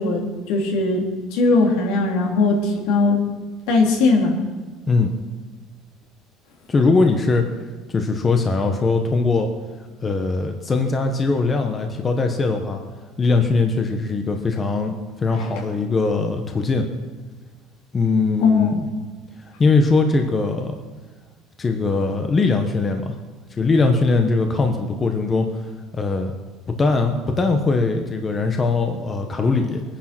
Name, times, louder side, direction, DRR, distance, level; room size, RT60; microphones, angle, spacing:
voice 1, 0.0-3.2 3.7-4.4 15.4-15.6 18.4-18.7, left 3 dB, 75° left, 1 dB, 3.3 m, -19 dB
voice 2, 6.7-7.5 7.9-9.5 10.0-12.8 13.2-16.9 17.9-18.9 19.4-20.7 21.6-23.2 23.6-25.5 25.9-26.3 26.7-29.8, left 3 dB, 20° left, 4 dB, 1.0 m, -20 dB
22.0 x 10.0 x 6.1 m, 1.3 s
cardioid pair, 170°, 0 cm